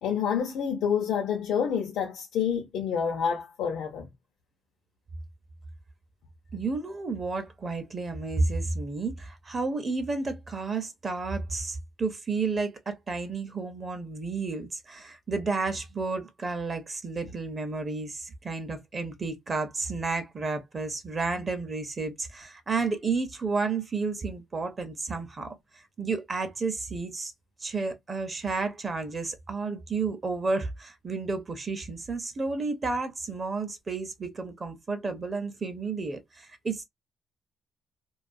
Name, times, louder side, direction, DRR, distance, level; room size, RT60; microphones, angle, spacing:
voice 1, 0.0-4.1, left 7 dB, 85° left, 0.6 m, -28 dB
voice 2, 6.5-25.5 26.0-27.3 27.6-36.8, right 3 dB, 30° right, 0.5 m, -31 dB
2.3 x 2.3 x 2.5 m
cardioid pair, 130°, 0 cm